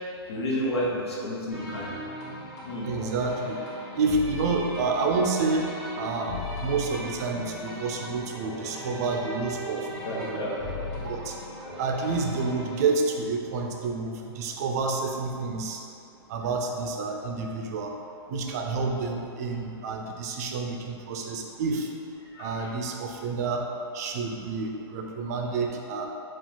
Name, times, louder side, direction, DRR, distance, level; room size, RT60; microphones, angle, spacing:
voice 1, 0.3-1.9 2.6-2.9 10.0-10.9 11.2-11.3 11.6-11.7 18.3-18.4 22.3-22.7, equal, 80° left, -5 dB, 1.0 m, -31 dB
sound 1, 1.5-13.0, left 1 dB, 40° left, 1.4 m, -38 dB
voice 2, 2.8-3.6 4.0-5.7 6.0-9.8 10.2-10.5 11.0-11.3 11.8-15.8 16.3-17.9 18.3-21.9 22.4-23.6 23.9-26.1, right 4 dB, 40° right, 2 dB, 0.4 m, -29 dB
4.7 x 2.4 x 3.7 m, 2.6 s
hypercardioid pair, 165°, 14 cm